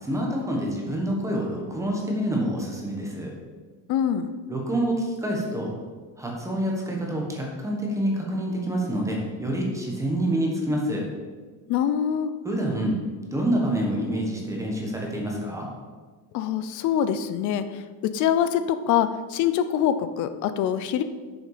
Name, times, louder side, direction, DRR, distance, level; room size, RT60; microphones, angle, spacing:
voice 1, 0.0-3.3 4.5-5.7 6.2-11.0 12.4-13.0 13.3-15.7, right 1 dB, 5° right, -1 dB, 1.4 m, -27 dB
voice 2, 3.9-4.3 11.7-12.3 16.3-21.0, left 9 dB, 45° left, 11 dB, 0.6 m, -24 dB
9.0 x 7.1 x 4.9 m, 1.4 s
cardioid pair, 170°, 43 cm